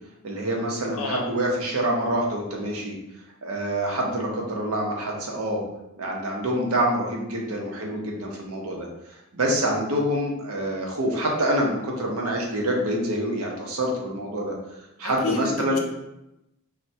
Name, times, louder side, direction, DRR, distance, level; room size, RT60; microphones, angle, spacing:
voice 1, 0.2-3.0 3.4-5.6 6.0-8.9 9.3-14.5 15.0-15.8, right 1 dB, 75° right, 0 dB, 0.6 m, -26 dB
voice 2, 0.9-1.3 15.0-15.8, left 4 dB, 70° left, 2 dB, 0.5 m, -29 dB
3.1 x 2.1 x 2.7 m, 0.88 s
head